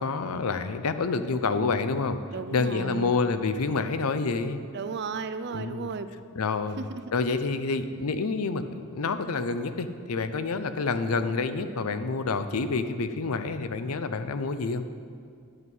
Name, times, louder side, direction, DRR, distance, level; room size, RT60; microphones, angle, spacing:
voice 1, 0.0-2.2 2.5-4.6 5.5-5.9 6.4-14.9, left 4 dB, 80° left, 10 dB, 0.6 m, -28 dB
voice 2, 2.3-3.1 4.7-6.1 6.8-7.0, right 4 dB, 50° right, 12 dB, 0.4 m, -34 dB
11.0 x 7.8 x 5.5 m, 2.2 s
head